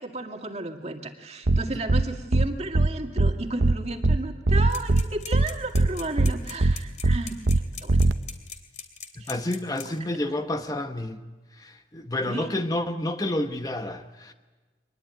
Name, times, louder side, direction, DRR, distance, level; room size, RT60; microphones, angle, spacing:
voice 1, 0.0-7.5 7.8-8.0 9.2-9.3 12.3-12.5, right 2 dB, 35° right, 4 dB, 2.2 m, -33 dB
sound 1, 1.5-1.6 1.9-2.0 2.3-2.5 2.7-2.9 3.2-3.3 3.6-3.7 4.0-4.2 4.5-5.0 5.3-5.5 5.7-5.9 6.2-6.3 6.6-6.7 7.0-7.2 7.5-7.6 7.9-8.1, right 2 dB, 70° right, 0.9 m, -19 dB
sound 2, 4.7-10.0, left 8 dB, 40° left, 2.8 m, -40 dB
voice 2, 9.2-11.2 11.6-14.3, left 1 dB, 20° left, 7 dB, 1.1 m, -29 dB
24.0 x 20.5 x 9.2 m, 1.3 s
head